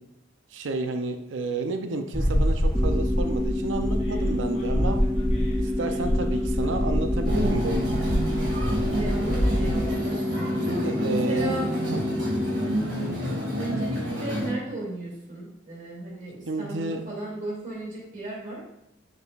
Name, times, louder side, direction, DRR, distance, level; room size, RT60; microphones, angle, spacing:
voice 1, 0.5-5.0 5.6-8.0 10.7-11.6 11.9-12.0 16.5-17.0, right 2 dB, 75° right, 6 dB, 0.6 m, -30 dB
sound 1, 2.1-9.7, equal, 30° left, 2.1 m, -26 dB
sound 2, 2.7-12.7, left 1 dB, 10° right, 0.4 m, -29 dB
sound 3, 7.2-14.5, equal, 60° right, 2.1 m, -30 dB
voice 2, 8.9-10.6 11.1-11.7 12.6-13.1 13.5-18.6, right 2 dB, 40° right, -4 dB, 2.5 m, -35 dB
7.2 x 5.9 x 2.4 m, 0.84 s
head